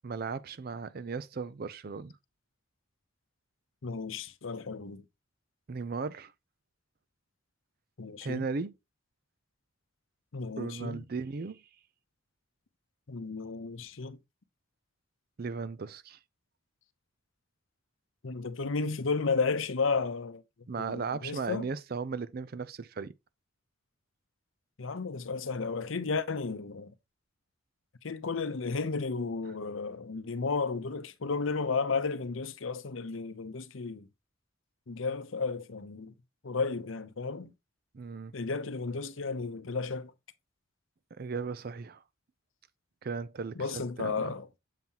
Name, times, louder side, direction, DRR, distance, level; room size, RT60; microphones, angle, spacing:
voice 1, 0.0-2.1 5.7-6.3 8.2-8.7 10.6-11.6 15.4-16.2 20.7-23.1 37.9-38.3 41.2-42.0 43.0-44.3, right 4 dB, 45° right, 0.4 m, -36 dB
voice 2, 3.8-5.0 8.0-8.5 10.3-11.0 13.1-14.2 18.2-20.4 20.8-21.7 24.8-26.9 28.0-34.1 34.9-36.1 36.4-37.5 38.3-40.1 43.6-44.5, left 4 dB, 75° left, 0.7 m, -33 dB
7.4 x 5.5 x 2.8 m
head